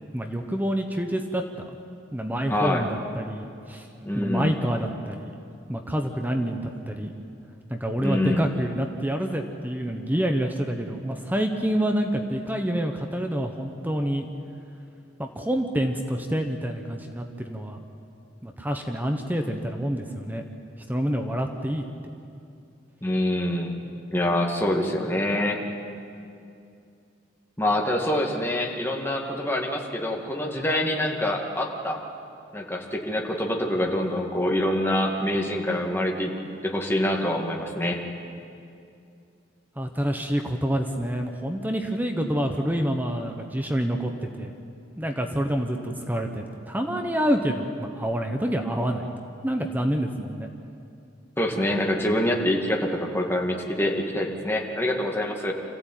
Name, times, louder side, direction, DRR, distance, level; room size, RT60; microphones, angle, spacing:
voice 1, 0.1-1.8 2.1-3.9 4.1-5.3 5.7-7.1 7.7-14.3 15.2-17.8 18.4-20.4 20.9-21.8 39.8-44.6 45.0-49.1 49.4-50.5, equal, 10° right, 4 dB, 1.2 m, -27 dB
voice 2, 2.5-2.8 4.1-4.5 8.0-8.4 23.0-23.8 24.1-25.6 27.6-32.0 32.5-36.4 36.6-38.0 51.4-55.5, left 1 dB, 15° left, 0 dB, 2.2 m, -25 dB
26.0 x 15.0 x 9.2 m, 2.5 s
head